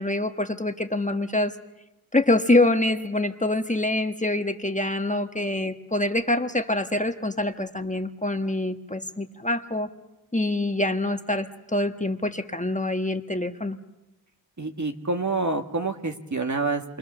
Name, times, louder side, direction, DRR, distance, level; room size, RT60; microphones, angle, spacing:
voice 1, 0.0-1.5 2.1-9.9 10.3-13.8, left 2 dB, 20° left, 7 dB, 1.3 m, -25 dB
voice 2, 14.6-17.0, right 3 dB, 45° right, 5 dB, 2.0 m, -27 dB
28.0 x 23.5 x 6.9 m, 0.97 s
wide cardioid pair, 50°, 39 cm